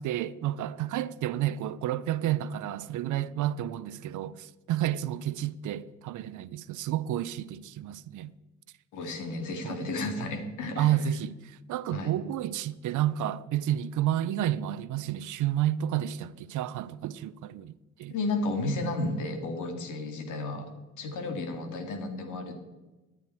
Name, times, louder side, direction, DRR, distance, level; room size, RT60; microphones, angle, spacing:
voice 1, 0.0-8.3 9.6-9.9 10.8-18.1, right 12 dB, 80° right, 0.6 m, -30 dB
voice 2, 8.9-11.0 11.9-12.1 18.1-20.7 21.0-22.5, left 2 dB, 85° left, 2.3 m, -32 dB
13.5 x 10.0 x 4.5 m
cardioid pair, 90°, 30 cm